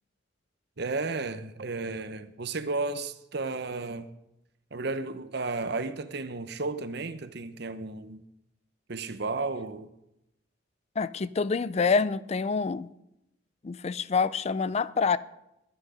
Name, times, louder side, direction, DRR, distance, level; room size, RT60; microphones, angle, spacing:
voice 1, 0.8-4.1 4.7-8.2 8.9-9.9, right 3 dB, 60° right, 0.9 m, -33 dB
voice 2, 11.0-12.9 13.6-15.2, left 5 dB, 35° left, 0.4 m, -26 dB
22.0 x 9.1 x 5.0 m
head